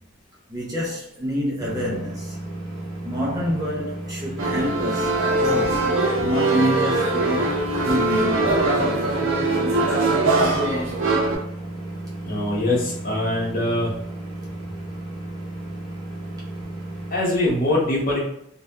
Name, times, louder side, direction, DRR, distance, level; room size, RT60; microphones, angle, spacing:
voice 1, 0.5-2.4 3.0-5.9 6.2-8.5, equal, 20° right, 0.4 m, -27 dB
sound 1, 1.6-17.2, right 1 dB, ahead, 0.9 m, -34 dB
sound 2, 4.4-11.4, right 2 dB, 70° right, 0.5 m, -22 dB
voice 2, 12.2-13.9 17.1-18.2, left 1 dB, 45° left, 0.9 m, -23 dB
2.7 x 2.2 x 2.2 m
head